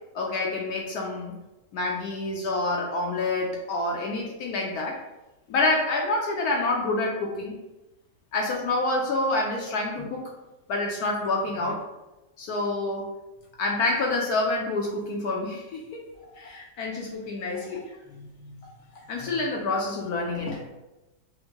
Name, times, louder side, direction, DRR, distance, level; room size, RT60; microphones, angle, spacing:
voice 1, 0.1-1.3 1.7-5.0 5.5-7.6 8.3-10.3 10.7-11.8 12.4-13.1 13.6-16.0 16.3-17.8 19.1-20.6, left 2 dB, 70° left, -1 dB, 1.0 m, -27 dB
voice 2, 18.0-18.7 18.9-19.4, left 2 dB, 15° left, -7 dB, 0.7 m, -46 dB
5.2 x 2.1 x 2.9 m, 1.0 s
omnidirectional pair, 1.8 m